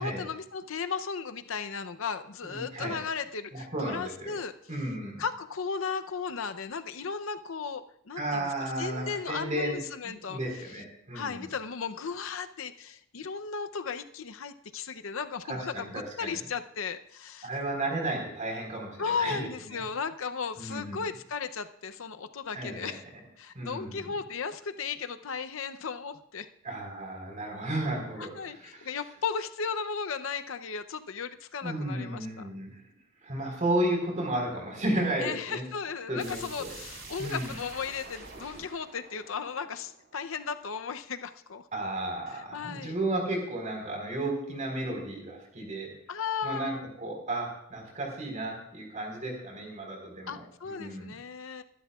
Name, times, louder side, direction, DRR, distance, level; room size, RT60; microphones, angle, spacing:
voice 1, 0.0-4.5 5.2-10.4 11.1-17.5 19.0-23.0 23.4-26.5 28.2-32.3 35.2-41.7 42.3-43.0 46.1-46.8 50.3-51.6, left 5 dB, 70° left, 10 dB, 0.6 m, -35 dB
voice 2, 2.4-3.0 3.5-4.4 4.7-5.2 8.2-11.5 15.4-16.4 17.4-19.8 20.6-21.0 22.5-22.9 23.5-24.1 26.6-28.9 31.6-32.7 33.2-35.6 36.1-36.8 37.2-37.5 41.7-45.9 46.4-51.1, right 1 dB, 35° right, 1 dB, 4.3 m, -33 dB
sound 1, 36.2-40.9, right 3 dB, 60° right, 4.2 m, -47 dB
23.0 x 12.0 x 2.4 m, 0.71 s
head